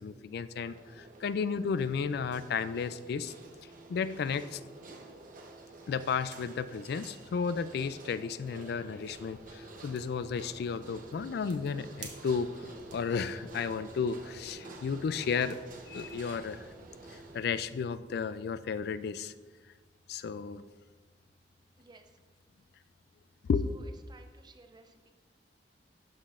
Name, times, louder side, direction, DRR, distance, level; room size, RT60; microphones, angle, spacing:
voice 1, 0.0-3.3 3.9-4.6 5.9-15.6 15.9-16.6 17.3-19.3 20.1-20.6 23.5-23.7, left 5 dB, 65° left, 15 dB, 0.3 m, -33 dB
sound 1, 0.6-17.4, right 2 dB, 50° right, 0.8 m, -49 dB
sound 2, 9.0-17.8, right 3 dB, 85° right, 1.1 m, -55 dB
voice 2, 21.8-22.1 23.6-25.1, right 3 dB, 25° right, 6 dB, 0.6 m, -57 dB
11.5 x 5.9 x 2.5 m, 1.4 s
head